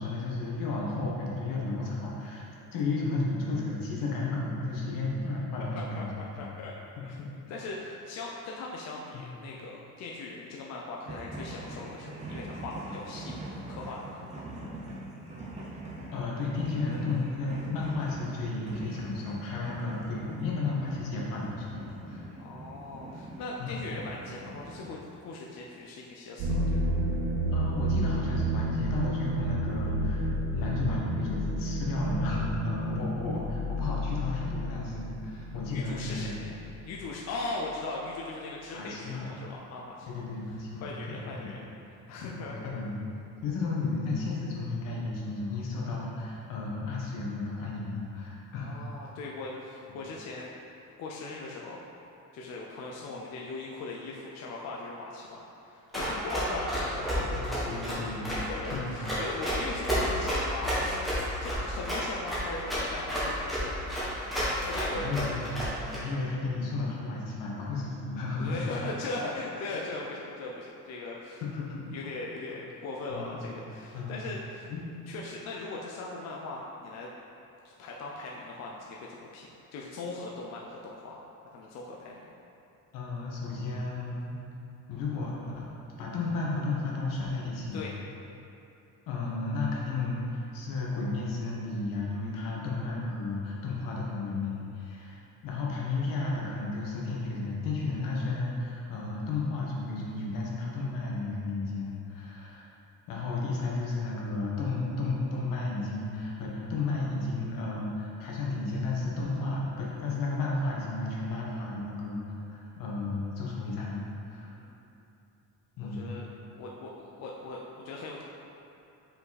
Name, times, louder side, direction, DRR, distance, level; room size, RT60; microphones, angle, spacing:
voice 1, 0.0-6.1 6.3-6.5 7.2-7.3 9.1-9.2 16.1-22.3 23.6-23.8 27.5-36.3 38.7-39.3 40.0-41.5 42.2-42.4 42.6-43.0 43.4-48.7 49.9-50.0 57.1-58.9 64.9-65.7 65.9-68.6 71.5-71.8 73.1-73.6 73.9-74.2 74.7-74.8 82.9-84.4 84.9-85.7 86.0-87.8 89.1-102.7 103.1-114.6 115.8-116.1, left 3 dB, 85° left, -3 dB, 1.3 m, -33 dB
voice 2, 5.7-6.7 7.0-7.2 7.5-14.5 22.4-27.0 35.7-36.6 36.8-40.2 40.8-41.6 42.1-42.8 48.6-50.5 51.0-51.8 52.3-57.4 58.3-63.8 64.4-65.1 68.4-71.4 71.9-74.7 75.1-77.1 77.8-81.2 81.5-82.3 87.7-88.0 114.4-114.8 115.8-116.3 116.5-118.2, left 3 dB, 55° left, -2 dB, 0.6 m, -39 dB
sound 1, 11.1-24.9, right 1 dB, 20° right, 0.6 m, -43 dB
sound 2, 26.4-36.7, right 1 dB, 90° right, 0.9 m, -31 dB
Run, 55.9-66.0, equal, ahead, 1.3 m, -30 dB
5.3 x 4.9 x 4.1 m, 2.8 s
cardioid pair, 180°, 32 cm